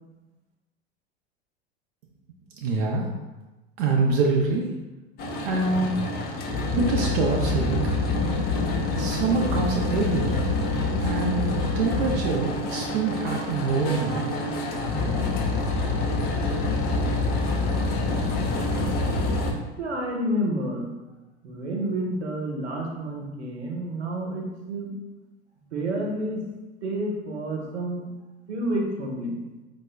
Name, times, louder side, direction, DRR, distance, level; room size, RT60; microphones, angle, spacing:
voice 1, 2.6-3.1 3.8-4.7 5.4-6.0 6.7-7.8 9.0-10.3 11.0-14.3, right 4 dB, 55° right, -1 dB, 0.5 m, -25 dB
sound 1, 5.2-19.5, left 2 dB, 30° left, 0.5 m, -26 dB
voice 2, 19.8-20.9 21.4-25.0 25.7-26.4 26.8-28.0 28.5-29.4, right 1 dB, 80° right, -1 dB, 0.8 m, -29 dB
4.6 x 2.2 x 2.2 m, 1.1 s
figure-of-eight pair, 85°, 34 cm